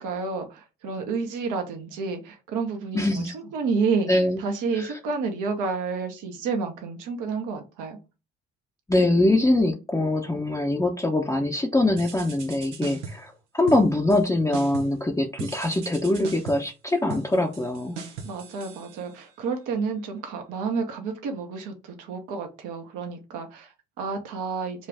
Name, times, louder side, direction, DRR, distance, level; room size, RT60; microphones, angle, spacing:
voice 1, 0.0-4.1 4.4-8.0 18.2-24.9, right 4 dB, 60° right, 4 dB, 1.1 m, -30 dB
voice 2, 2.9-3.3 4.1-4.4 4.8-4.9 8.9-18.0, left 2 dB, 10° left, 0 dB, 0.8 m, -23 dB
sound 1, 12.0-13.3 13.7-14.2 14.5-15.0 15.4-19.4, right 5 dB, 85° right, 0.9 m, -40 dB
5.5 x 2.5 x 3.4 m, 0.29 s
hypercardioid pair, 50°, 34 cm